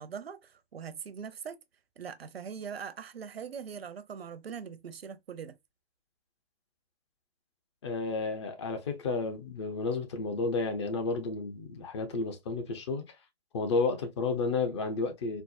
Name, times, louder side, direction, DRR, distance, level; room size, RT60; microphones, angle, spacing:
voice 1, 0.0-1.6 2.0-5.6, right 7 dB, 70° right, 0.7 m, -41 dB
voice 2, 7.8-13.0 13.5-15.4, left 3 dB, 30° left, 0.7 m, -31 dB
4.5 x 2.0 x 2.5 m
hypercardioid pair, 145°, 31 cm